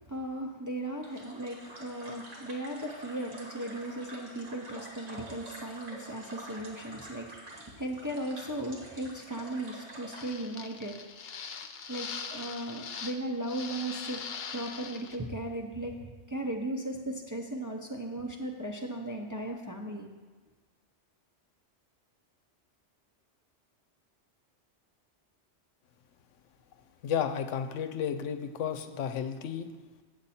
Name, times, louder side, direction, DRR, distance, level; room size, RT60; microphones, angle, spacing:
voice 1, 0.0-11.1 11.9-14.2 14.5-20.1, right 1 dB, 25° right, 1 dB, 0.5 m, -37 dB
sound 1, 1.0-10.3, right 1 dB, 85° right, 2.1 m, -47 dB
sound 2, 10.1-13.2 13.4-15.2, left 6 dB, 60° left, 0.8 m, -41 dB
voice 2, 27.0-29.7, left 8 dB, 90° left, 8 dB, 1.0 m, -32 dB
8.1 x 7.9 x 4.2 m, 1.4 s
omnidirectional pair, 1.2 m